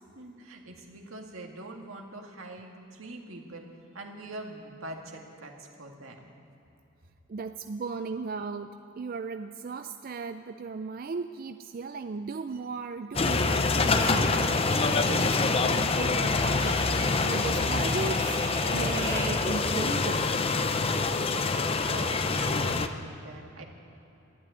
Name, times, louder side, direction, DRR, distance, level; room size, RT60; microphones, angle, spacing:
voice 1, 0.1-3.7 3.9-6.3 21.2-23.6, right 1 dB, 85° right, 2 dB, 2.0 m, -43 dB
voice 2, 7.3-18.4 18.7-20.3, right 4 dB, 45° right, 8 dB, 0.4 m, -37 dB
sound 1, 13.1-22.9, left 3 dB, 30° left, 0.6 m, -26 dB
sound 2, 13.8-19.4, right 1 dB, 10° right, 4.7 m, -40 dB
12.5 x 11.0 x 9.8 m, 2.9 s
head